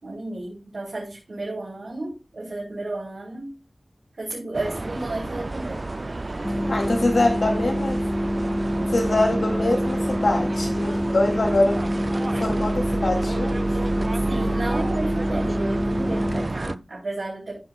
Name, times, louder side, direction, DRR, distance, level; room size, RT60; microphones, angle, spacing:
voice 1, 0.0-3.6 4.2-5.8 14.3-17.6, right 2 dB, 85° right, 3.2 m, -33 dB
sound 1, 4.5-16.8, right 2 dB, 45° right, 0.4 m, -30 dB
sound 2, 6.4-16.5, equal, 10° left, 1.5 m, -26 dB
voice 2, 6.7-8.0 8.9-11.8 12.4-13.6, left 2 dB, 85° left, 2.9 m, -24 dB
14.5 x 6.2 x 2.4 m
wide cardioid pair, 70°, 0 cm